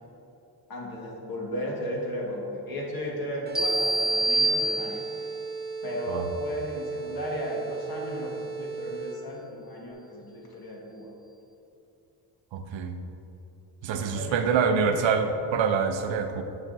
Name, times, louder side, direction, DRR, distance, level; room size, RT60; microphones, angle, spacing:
voice 1, 0.7-5.0 5.8-11.1 13.9-15.2, equal, 50° left, -2 dB, 1.6 m, -35 dB
sound 1, 3.5-5.4, right 1 dB, ahead, 0.9 m, -26 dB
sound 2, 3.5-9.4, right 5 dB, 20° right, 0.7 m, -36 dB
voice 2, 12.5-12.9 13.8-16.4, right 6 dB, 75° right, 7 dB, 0.7 m, -26 dB
9.8 x 5.9 x 2.6 m, 2.7 s
cardioid pair, 100°, 45 cm